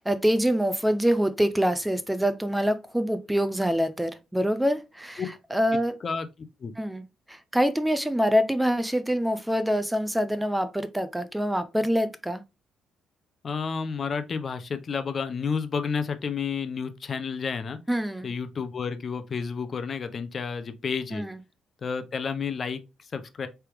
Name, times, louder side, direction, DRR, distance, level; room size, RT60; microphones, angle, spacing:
voice 1, 0.0-5.2 5.5-6.0 6.8-12.4 17.9-18.3 21.1-21.4, equal, 5° right, 0.4 m, -25 dB
voice 2, 13.4-17.8 18.2-21.3 21.8-23.5, left 5 dB, 45° left, 0.6 m, -31 dB
4.7 x 3.4 x 3.0 m
cardioid pair, 90°, 0 cm